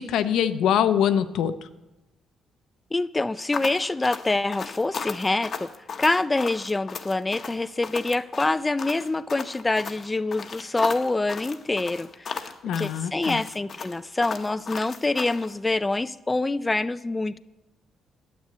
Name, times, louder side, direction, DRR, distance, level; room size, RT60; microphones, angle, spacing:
voice 1, 0.0-1.5 12.6-13.4, left 9 dB, 80° left, 11 dB, 0.6 m, -23 dB
voice 2, 2.9-5.7 6.0-12.5 12.8-17.4, left 2 dB, 20° left, 14 dB, 0.3 m, -26 dB
sound 1, 3.5-15.5, left 5 dB, 50° left, 0.9 m, -35 dB
9.5 x 8.1 x 8.5 m, 1.0 s
cardioid pair, 90°, 0 cm